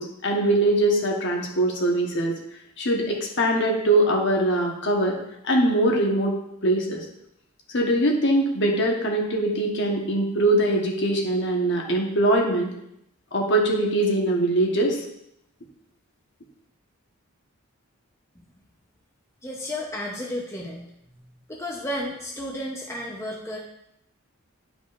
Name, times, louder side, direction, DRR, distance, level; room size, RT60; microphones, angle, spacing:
voice 1, 0.0-2.4 2.8-5.2 5.4-6.3 6.6-7.0 7.7-12.7 13.3-15.0, right 1 dB, 55° left, 0 dB, 1.2 m, -22 dB
voice 2, 19.4-20.8 21.5-23.6, left 1 dB, 10° left, -2 dB, 0.7 m, -32 dB
10.5 x 5.1 x 2.5 m, 0.79 s
head